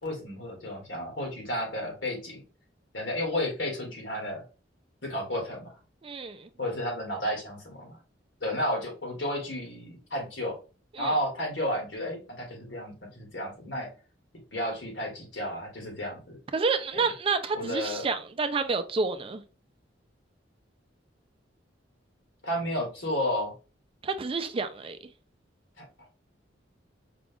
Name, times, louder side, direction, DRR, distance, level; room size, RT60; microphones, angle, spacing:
voice 1, 0.0-2.4 2.9-4.4 5.0-5.7 6.6-8.0 8.4-10.6 11.0-13.9 14.5-16.4 16.9-17.0 17.5-18.1 22.4-23.5 25.8-25.9, left 1 dB, 70° left, 2.0 m, -32 dB
voice 2, 6.0-6.5 10.9-11.2 16.5-19.4 24.0-25.0, right 4 dB, 30° right, 0.4 m, -29 dB
5.0 x 2.3 x 3.6 m
head